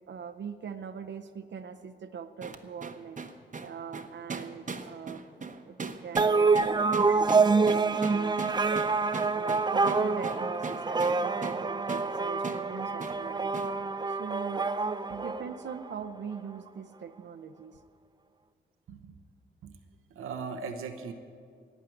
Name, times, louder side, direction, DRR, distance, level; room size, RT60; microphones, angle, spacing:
voice 1, 0.1-3.2 3.6-5.2 5.7-6.9 7.3-8.4 9.3-13.5 14.1-14.7 15.1-17.8, right 7 dB, 60° right, 7 dB, 0.7 m, -42 dB
sound 1, 2.4-11.6 11.9-12.1 12.4-12.6 13.0-13.2 13.5-13.7, right 4 dB, 35° right, 1.0 m, -39 dB
sound 2, 6.2-16.0, right 4 dB, 20° right, 0.5 m, -27 dB
voice 2, 20.1-21.1, right 5 dB, 90° right, 6 dB, 0.9 m, -38 dB
12.5 x 8.2 x 9.1 m, 2.2 s
cardioid pair, 60°, 21 cm